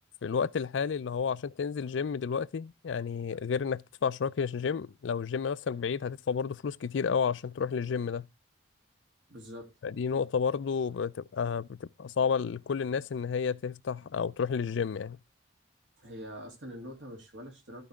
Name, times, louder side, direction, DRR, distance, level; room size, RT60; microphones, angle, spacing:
voice 1, 0.2-8.3 9.8-15.2, left 6 dB, 75° left, 0.4 m, -31 dB
voice 2, 9.3-9.7 16.0-17.9, equal, 75° right, 3.0 m, -44 dB
13.5 x 4.8 x 3.5 m
head